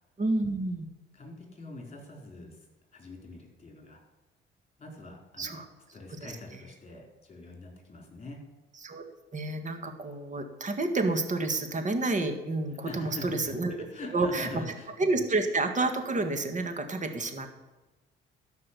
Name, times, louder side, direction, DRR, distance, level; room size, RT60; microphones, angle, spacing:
voice 1, 0.2-0.9 5.4-5.7 6.1-6.3 8.8-9.0 9.3-13.9 14.1-14.6 15.0-17.6, right 2 dB, 40° right, 7 dB, 1.9 m, -29 dB
voice 2, 1.1-2.7 2.9-4.0 4.8-5.6 5.9-8.4 12.8-13.5 13.9-14.9, left 2 dB, 30° left, 1 dB, 4.6 m, -43 dB
12.5 x 5.6 x 8.4 m, 1.1 s
cardioid pair, 90°, 20 cm